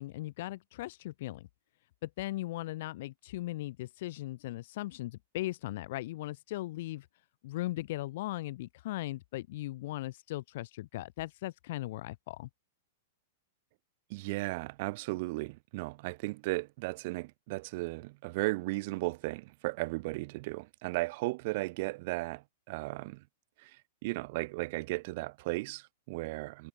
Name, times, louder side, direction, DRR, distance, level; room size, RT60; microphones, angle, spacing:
voice 1, 0.0-1.5 2.0-7.1 7.4-12.5, left 17 dB, 55° left, 1.1 m, -38 dB
voice 2, 14.1-23.2 23.6-26.7, right 23 dB, 50° right, 1.3 m, -35 dB
hypercardioid pair, 105°, 0 cm